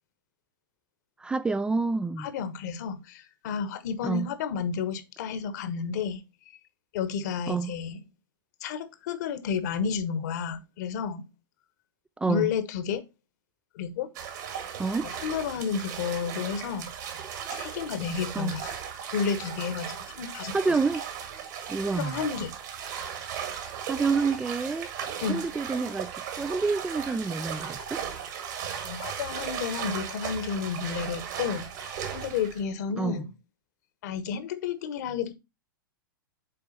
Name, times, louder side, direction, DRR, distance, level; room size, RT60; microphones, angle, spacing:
voice 1, 1.2-2.3 4.0-4.3 7.5-7.7 12.2-12.5 14.8-15.1 18.3-18.5 20.5-21.0 21.7-22.2 22.9-23.2 23.9-24.9 25.3-28.0 33.0-33.3, right 4 dB, 10° right, 0.3 m, -28 dB
voice 2, 2.2-6.2 6.9-8.0 8.6-11.2 12.3-13.0 13.7-14.1 15.0-16.9 17.5-18.7 19.1-20.5 21.9-22.5 25.2-25.5 28.8-33.3 34.0-35.3, left 7 dB, 50° left, 1.1 m, -31 dB
sound 1, 14.1-32.6, right 8 dB, 55° right, 1.9 m, -37 dB
6.9 x 4.5 x 4.2 m
figure-of-eight pair, 100°, 11 cm